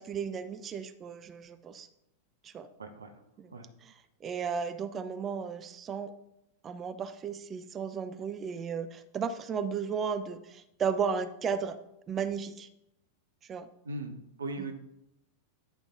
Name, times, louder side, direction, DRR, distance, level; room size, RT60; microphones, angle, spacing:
voice 1, 0.0-1.9 2.4-2.7 3.4-3.5 3.8-3.9 4.2-6.1 6.6-11.8 12.1-12.7 13.5-13.7, right 6 dB, 25° right, 10 dB, 0.5 m, -34 dB
voice 2, 2.8-3.1 3.5-3.7 13.8-14.7, right 2 dB, 70° right, 6 dB, 0.9 m, -38 dB
10.0 x 5.2 x 3.7 m, 0.83 s
figure-of-eight pair, 90°, 0 cm